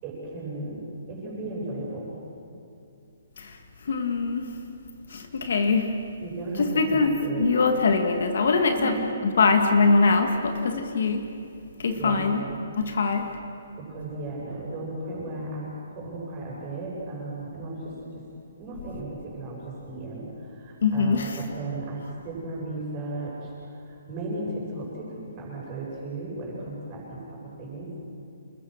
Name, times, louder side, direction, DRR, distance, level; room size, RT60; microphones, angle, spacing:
voice 1, 0.0-0.8 1.1-2.2 6.2-7.4 8.8-9.1 11.9-12.6 12.9-13.0 13.8-18.2 18.6-27.9, right 2 dB, 20° right, -4 dB, 7.6 m, -35 dB
voice 2, 3.9-4.5 5.1-6.0 6.6-8.9 9.2-11.3 11.8-12.4 12.8-13.3 20.8-21.4, left 4 dB, 60° left, 5 dB, 2.0 m, -23 dB
28.0 x 21.5 x 6.6 m, 2.6 s
hypercardioid pair, 175°, 0 cm